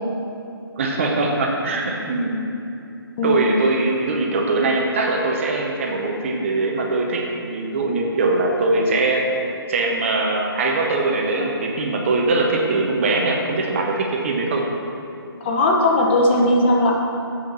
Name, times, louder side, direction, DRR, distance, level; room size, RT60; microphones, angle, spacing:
voice 1, 0.8-2.4 3.2-9.3 9.7-14.7, right 2 dB, 30° right, 1 dB, 0.7 m, -21 dB
voice 2, 3.2-3.5 15.4-16.9, left 1 dB, 25° left, 0 dB, 0.8 m, -18 dB
8.4 x 4.5 x 5.3 m, 2.7 s
hypercardioid pair, 160°, 13 cm